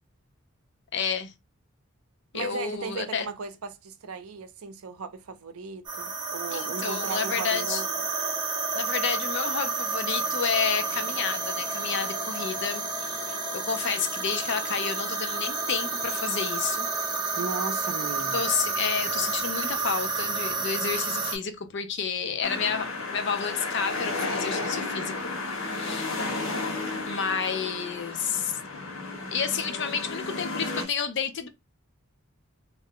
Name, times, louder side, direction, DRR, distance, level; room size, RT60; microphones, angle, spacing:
voice 1, 0.9-1.3 2.3-3.3 6.5-7.8 8.7-13.2 13.5-16.9 18.3-26.1 27.0-28.5 29.3-31.5, left 6 dB, 55° left, 0.5 m, -30 dB
voice 2, 2.3-7.9 17.4-18.4 30.8-30.9, right 5 dB, 90° right, 0.5 m, -36 dB
sound 1, 5.9-21.4, right 4 dB, 20° right, 0.6 m, -30 dB
sound 2, 22.4-30.8, left 3 dB, 80° left, 0.9 m, -33 dB
2.5 x 2.1 x 3.5 m
head